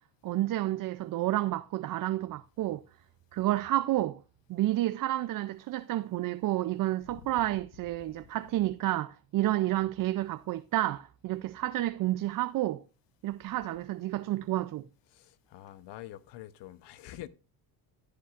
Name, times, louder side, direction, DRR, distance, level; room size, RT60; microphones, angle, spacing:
voice 1, 0.2-2.8 3.3-4.2 4.5-12.8 13.2-14.8, right 15 dB, 50° right, 0.5 m, -30 dB
voice 2, 15.1-17.3, left 13 dB, 70° left, 0.9 m, -46 dB
14.0 x 8.2 x 2.5 m
cardioid pair, 100°, 43 cm